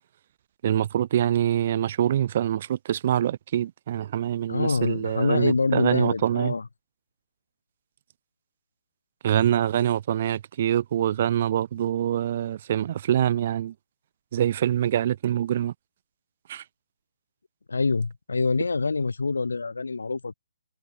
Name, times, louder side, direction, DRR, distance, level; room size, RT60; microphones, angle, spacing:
voice 1, 0.6-6.5 9.2-13.7 14.3-15.7 16.5-16.6, right 10 dB, 45° right, 2.1 m, -25 dB
voice 2, 4.5-6.6 17.7-20.3, left 4 dB, 80° left, 3.2 m, -25 dB
hypercardioid pair, 145°, 0 cm